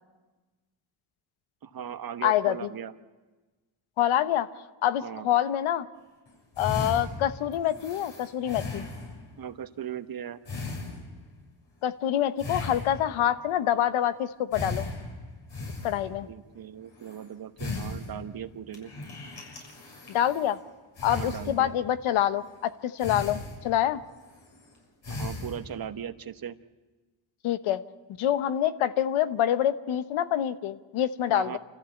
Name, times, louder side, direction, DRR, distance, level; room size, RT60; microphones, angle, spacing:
voice 1, 1.6-2.9 5.0-5.3 9.4-10.4 16.2-18.9 21.0-21.7 25.1-26.5 31.3-31.6, right 9 dB, 45° right, 11 dB, 1.1 m, -38 dB
voice 2, 2.2-2.6 4.0-4.5 4.8-5.9 6.6-8.8 11.8-14.9 15.8-16.3 20.1-20.6 21.0-24.0 27.4-27.8 28.2-31.6, left 11 dB, 85° left, 13 dB, 1.0 m, -26 dB
sound 1, 6.3-6.4 6.6-9.4 10.5-11.4 12.4-13.3 14.5-16.2 17.0-17.2 17.6-18.5 18.7-20.6 21.0-21.9 22.4-22.6 23.0-23.9 24.2-24.7 25.0-25.8, left 3 dB, 60° left, 6.8 m, -37 dB
27.5 x 14.5 x 8.3 m, 1.2 s
cardioid pair, 80°, 47 cm